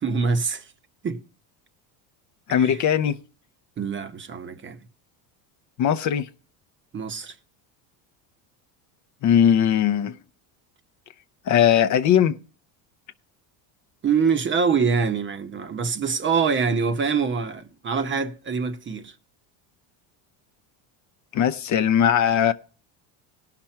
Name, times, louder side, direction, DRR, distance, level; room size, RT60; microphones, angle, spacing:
voice 1, 0.0-0.7 1.0-1.2 2.5-2.9 3.8-4.8 6.9-7.4 14.0-19.1, right 5 dB, 25° right, 0.8 m, -25 dB
voice 2, 2.5-3.2 5.8-6.3 9.2-10.2 11.5-12.3 21.3-22.5, left 9 dB, 40° left, 0.5 m, -19 dB
17.5 x 5.9 x 4.3 m
cardioid pair, 130°, 46 cm